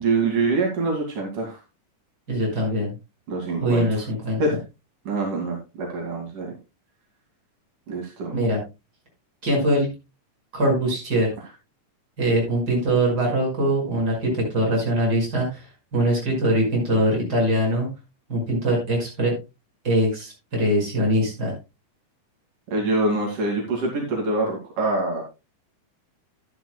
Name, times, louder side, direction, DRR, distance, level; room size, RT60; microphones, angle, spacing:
voice 1, 0.0-1.6 3.3-4.0 4.4-4.5 5.1-6.5 7.9-8.3 22.7-25.2, right 3 dB, 75° right, -1 dB, 3.9 m, -25 dB
voice 2, 2.3-2.9 3.6-4.6 8.3-8.6 9.4-9.9 10.5-11.3 12.2-15.6 15.9-17.9 18.3-19.3 19.8-21.5, right 1 dB, 30° right, -1 dB, 6.1 m, -22 dB
12.5 x 12.0 x 2.3 m, 0.26 s
omnidirectional pair, 3.7 m